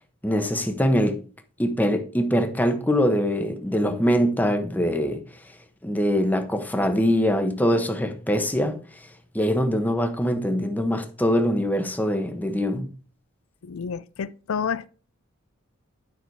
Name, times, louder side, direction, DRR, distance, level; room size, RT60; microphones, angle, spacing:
voice 1, 0.2-1.2 1.6-5.2 5.8-9.1 9.3-12.9, equal, 10° left, 1.1 m, -23 dB
voice 2, 13.6-14.9, left 6 dB, 85° left, 0.4 m, -29 dB
9.5 x 6.0 x 4.7 m
head